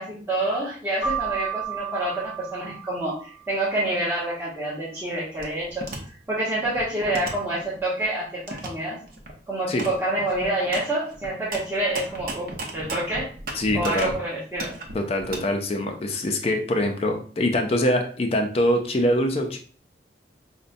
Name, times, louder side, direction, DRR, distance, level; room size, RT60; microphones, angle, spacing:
voice 1, 0.0-5.9 6.3-9.0 9.5-12.5 12.7-13.3 13.7-14.7, right 1 dB, 15° right, -10 dB, 0.9 m, -27 dB
Keyboard (musical), 1.0-3.6, right 7 dB, 35° right, 1.6 m, -32 dB
sound 1, 5.4-6.0 6.5-8.0 8.5-8.7 9.1-9.3 9.8-10.0 10.2-14.2 14.5-15.4, right 2 dB, 55° right, 0.7 m, -35 dB
voice 2, 13.5-14.1 14.9-19.6, left 1 dB, 35° left, 4 dB, 0.4 m, -24 dB
5.1 x 2.1 x 2.5 m, 0.43 s
head